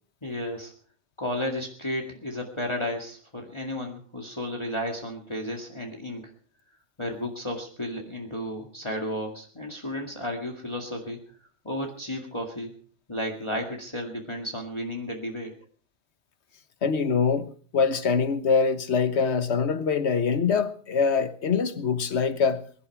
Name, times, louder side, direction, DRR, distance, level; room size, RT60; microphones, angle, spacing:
voice 1, 0.2-0.7 1.2-6.3 7.0-11.2 11.6-12.7 13.1-15.5, left 1 dB, 25° left, 2.1 m, -33 dB
voice 2, 16.8-17.5 17.7-22.6, left 5 dB, 65° left, 1.4 m, -24 dB
22.5 x 11.5 x 4.7 m
omnidirectional pair, 1.2 m